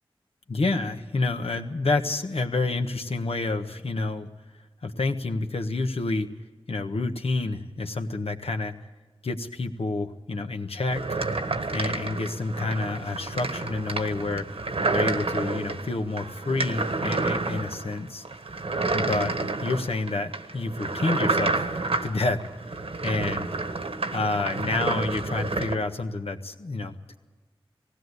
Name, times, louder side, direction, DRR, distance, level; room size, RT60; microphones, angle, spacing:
voice 1, 0.5-4.3 4.8-6.3 6.7-8.7 9.2-11.2 11.7-14.5 14.9-18.2 18.9-21.7 22.0-22.4 23.0-23.5 24.1-27.2, left 3 dB, 80° left, 5 dB, 1.4 m, -28 dB
sound 1, 10.9-25.8, right 3 dB, 80° right, 1.5 m, -29 dB
19.0 x 16.5 x 8.2 m, 1.3 s
wide cardioid pair, 50°, 10 cm